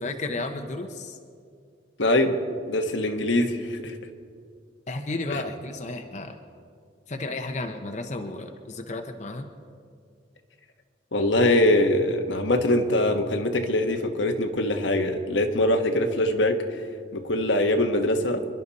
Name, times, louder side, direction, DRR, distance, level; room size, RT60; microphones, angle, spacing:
voice 1, 0.0-1.2 4.9-6.4 7.1-9.5, left 2 dB, 40° left, 5 dB, 0.8 m, -33 dB
voice 2, 2.0-3.9 5.3-5.4 11.1-16.9 17.1-18.4, left 1 dB, 85° left, 5 dB, 1.3 m, -23 dB
27.5 x 11.0 x 4.1 m, 2.3 s
head